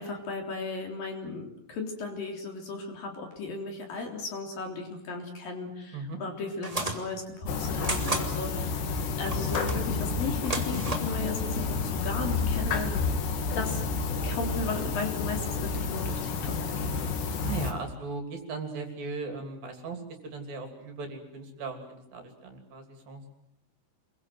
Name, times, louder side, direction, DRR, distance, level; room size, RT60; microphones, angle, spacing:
voice 1, 0.0-8.8 9.2-12.9 13.6-13.9 14.2-17.1, left 3 dB, 55° left, 2 dB, 5.1 m, -36 dB
sound 1, 6.6-7.0 7.8-8.3 9.3-9.8 10.4-11.1, right 2 dB, 10° right, 2.3 m, -32 dB
sound 2, 7.5-17.7, left 4 dB, 80° left, 4.5 m, -30 dB
voice 2, 17.4-23.3, right 4 dB, 55° right, 5 dB, 4.6 m, -38 dB
28.5 x 23.0 x 7.9 m, 0.77 s
omnidirectional pair, 4.9 m